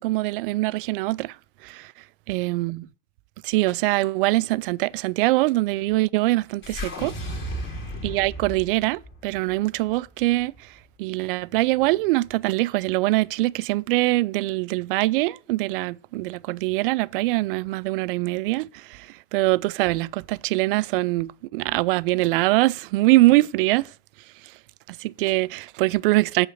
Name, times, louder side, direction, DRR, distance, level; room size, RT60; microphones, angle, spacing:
voice 1, 0.0-1.4 1.6-1.9 2.3-2.9 3.4-7.1 8.0-10.5 11.0-23.9 24.9-26.5, right 20 dB, 55° right, 0.4 m, -23 dB
sound 1, 6.6-10.9, equal, 35° left, 2.8 m, -35 dB
7.2 x 5.5 x 6.3 m
hypercardioid pair, 100°, 34 cm